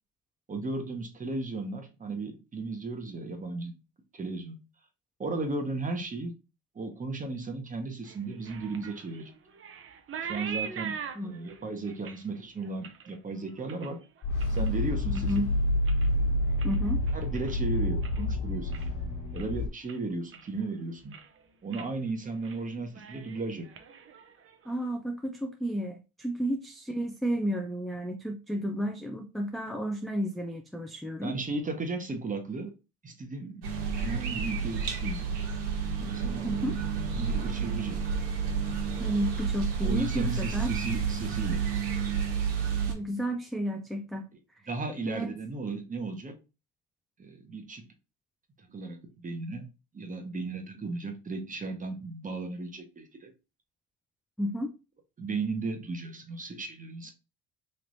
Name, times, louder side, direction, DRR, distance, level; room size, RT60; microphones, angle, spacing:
voice 1, 0.5-3.7 4.1-4.6 5.2-6.3 6.7-9.3 10.3-14.0 14.5-15.3 17.1-18.8 19.3-21.1 21.6-23.7 31.2-32.7 33.0-35.4 36.0-36.6 37.2-38.0 39.8-41.6 44.7-46.3 47.2-47.8 48.7-49.7 49.9-53.3 55.2-57.1, right 3 dB, 25° right, 1.0 m, -35 dB
sound 1, 8.0-14.7 15.0-15.5 15.8-18.3 18.6-19.0 19.4-19.5 19.9-20.7 21.0-21.4 21.7-21.9 22.3-22.6 22.9-24.7, right 6 dB, 40° right, 0.7 m, -43 dB
sound 2, 14.2-19.7, left 1 dB, 45° left, 1.4 m, -28 dB
voice 2, 15.1-15.5 16.6-17.0 24.7-31.3 36.4-36.8 39.0-40.7 42.9-44.3 45.1-45.3 54.4-54.7, equal, ahead, 0.4 m, -32 dB
sound 3, 33.6-42.9, right 6 dB, 70° right, 1.3 m, -30 dB
3.3 x 2.9 x 3.9 m
supercardioid pair, 95°, 34 cm